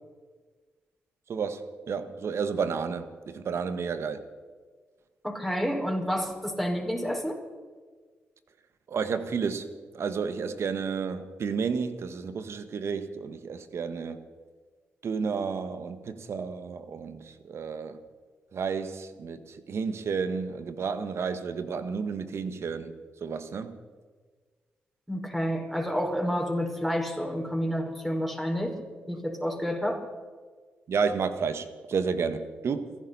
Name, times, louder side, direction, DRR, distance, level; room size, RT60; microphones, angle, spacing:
voice 1, 1.3-4.2 8.9-14.2 15.0-18.0 18.5-22.9 23.2-23.8 30.9-32.9, right 5 dB, 60° right, 1.4 m, -31 dB
voice 2, 5.2-7.4 25.1-28.8 29.1-30.0, equal, ahead, 5.3 m, -29 dB
29.5 x 11.0 x 4.2 m
hypercardioid pair, 40°, 5 cm